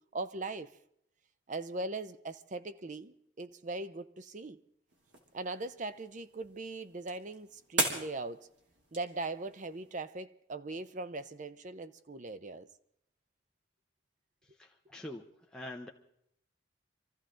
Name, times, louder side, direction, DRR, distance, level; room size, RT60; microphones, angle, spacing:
voice 1, 0.1-0.7 1.5-4.6 5.3-8.5 8.9-12.7, right 2 dB, 40° right, 0.6 m, -40 dB
sound 1, 4.9-10.0, right 2 dB, 75° right, 3.2 m, -39 dB
voice 2, 14.6-15.2 15.5-15.9, left 1 dB, 5° left, 0.8 m, -44 dB
25.0 x 14.5 x 3.8 m
head